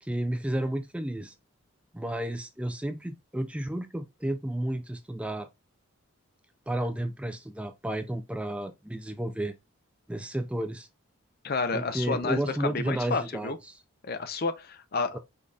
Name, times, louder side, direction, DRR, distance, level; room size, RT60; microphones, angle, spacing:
voice 1, 0.0-1.3 1.9-5.5 6.7-9.5 10.1-10.9 11.7-13.8 15.1-15.2, right 1 dB, 5° right, 0.3 m, -32 dB
voice 2, 11.4-13.6 14.0-15.2, left 4 dB, 45° left, 0.5 m, -30 dB
5.3 x 3.9 x 2.3 m
head